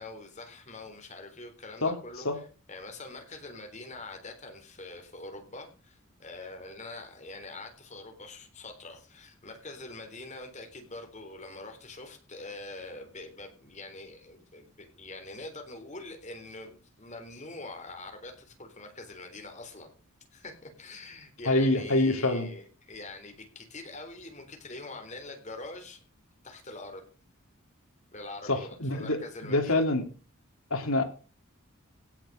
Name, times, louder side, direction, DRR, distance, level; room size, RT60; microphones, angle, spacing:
voice 1, 0.0-19.9 20.3-26.0 26.4-27.1 28.1-29.8, left 2 dB, 35° left, 4 dB, 3.7 m, -44 dB
voice 2, 21.5-22.5 28.5-29.2 29.5-30.0 30.7-31.0, left 2 dB, 85° left, 5 dB, 2.9 m, -25 dB
17.0 x 6.7 x 6.4 m, 0.37 s
head